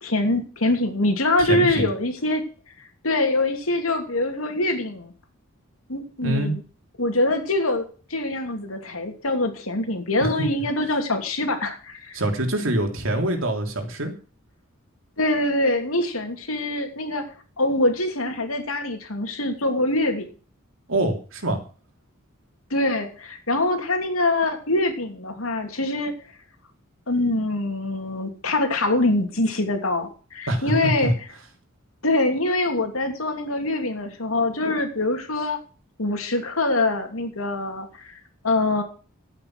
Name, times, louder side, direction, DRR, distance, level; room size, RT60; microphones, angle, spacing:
voice 1, 0.0-2.4 3.0-5.1 5.9-6.6 7.0-7.8 8.1-12.2 15.2-20.3 22.7-26.1 27.1-31.1 32.0-35.6 36.0-38.1 38.4-38.8, left 2 dB, 85° left, 5 dB, 2.9 m, -24 dB
voice 2, 1.4-1.9 6.2-6.5 10.2-10.3 12.1-14.1 20.9-21.6 30.5-31.1, right 1 dB, 70° right, 4 dB, 3.3 m, -24 dB
12.0 x 8.9 x 6.2 m, 0.38 s
head